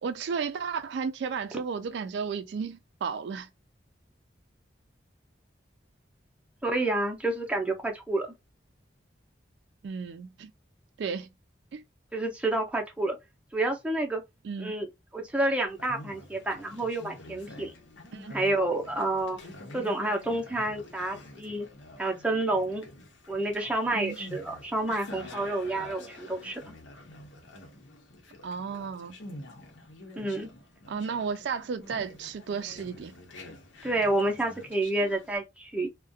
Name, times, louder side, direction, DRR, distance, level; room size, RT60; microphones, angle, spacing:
voice 1, 0.0-3.5 9.8-10.5 11.0-11.3 11.7-11.8 14.4-14.7 18.1-18.4 23.9-24.2 28.4-29.2 30.9-33.1, right 6 dB, 70° right, 0.3 m, -33 dB
voice 2, 6.6-8.3 12.1-13.2 13.5-14.2 14.6-17.7 18.3-19.4 19.7-21.7 22.0-22.8 23.3-26.7 30.2-30.5 33.8-35.9, right 2 dB, 5° right, 0.5 m, -29 dB
Conversation, 15.7-35.4, left 1 dB, 85° left, 0.8 m, -47 dB
2.3 x 2.1 x 2.6 m
head